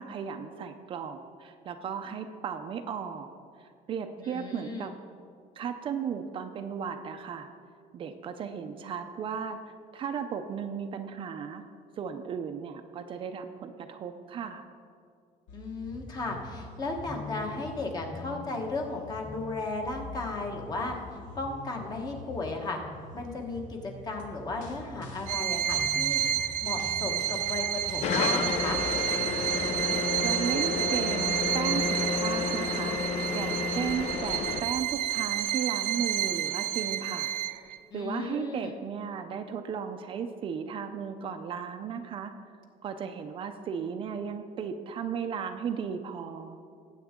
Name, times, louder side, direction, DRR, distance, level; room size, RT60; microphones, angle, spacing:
voice 1, 0.0-3.3 3.6-4.9 5.6-7.5 7.9-9.6 9.9-11.6 12.0-14.6 30.2-33.0 33.3-37.3 37.9-42.3 42.8-46.6, right 7 dB, 35° right, 6 dB, 0.5 m, -35 dB
voice 2, 4.2-4.9 15.5-20.9 21.4-22.8 23.1-26.2 26.6-28.8 37.9-38.8, left 3 dB, 25° left, 2 dB, 1.3 m, -35 dB
sound 1, 15.5-30.0, left 3 dB, 70° left, 1.3 m, -44 dB
Bowed string instrument, 25.3-37.8, right 12 dB, 75° right, 0.7 m, -30 dB
sound 2, 28.0-34.6, left 5 dB, 50° left, 0.6 m, -31 dB
18.5 x 8.4 x 3.7 m, 2.2 s
cardioid pair, 175°, 14 cm